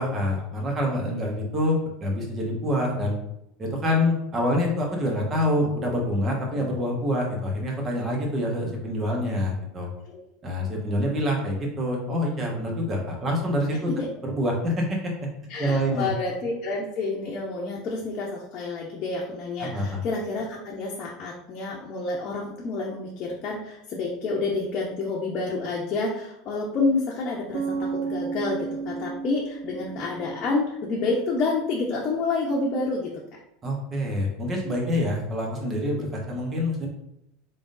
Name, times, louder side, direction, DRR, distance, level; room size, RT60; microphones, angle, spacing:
voice 1, 0.0-3.2 3.6-9.9 10.4-13.9 14.2-15.1 15.6-16.1 19.6-20.0 33.6-36.9, left 1 dB, 30° right, 0 dB, 1.3 m, -26 dB
voice 2, 15.5-33.1, left 3 dB, 45° left, -3 dB, 0.8 m, -29 dB
Bass guitar, 27.5-31.2, right 5 dB, 65° right, 0.5 m, -33 dB
3.9 x 3.5 x 2.6 m, 0.82 s
hypercardioid pair, 85°, 0 cm